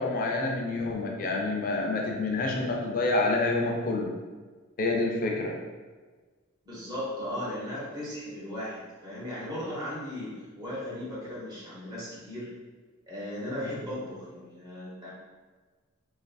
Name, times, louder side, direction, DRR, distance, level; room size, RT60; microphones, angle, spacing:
voice 1, 0.0-4.1 4.8-5.5 13.6-13.7, left 2 dB, 40° left, 0 dB, 0.3 m, -28 dB
voice 2, 6.6-12.5 13.1-15.1, left 1 dB, 20° right, -8 dB, 0.7 m, -37 dB
2.5 x 2.3 x 2.2 m, 1.4 s
head